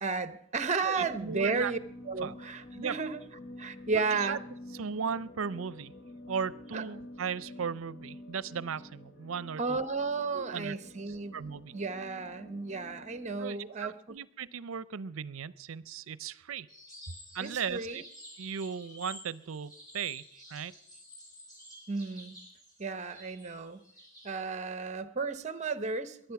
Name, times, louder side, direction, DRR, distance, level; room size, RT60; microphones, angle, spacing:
voice 1, 0.0-1.8 2.1-3.2 3.6-4.4 6.7-6.8 9.6-11.4 11.7-14.2 17.4-18.0 21.9-22.4 22.8-23.8 24.2-26.3, right 4 dB, 35° right, 12 dB, 0.9 m, -33 dB
voice 2, 0.8-1.7 2.2-2.3 2.7-3.0 3.9-4.4 4.7-5.9 6.3-9.8 10.3-10.8 11.3-11.7 13.4-16.7 17.3-18.0 18.4-20.2 20.5-20.7, right 6 dB, 75° right, 18 dB, 0.5 m, -37 dB
sound 1, 0.9-13.4, left 1 dB, 50° left, 1.1 m, -49 dB
sound 2, 16.7-24.3, equal, 20° left, 6.7 m, -51 dB
22.5 x 9.0 x 5.9 m, 0.69 s
head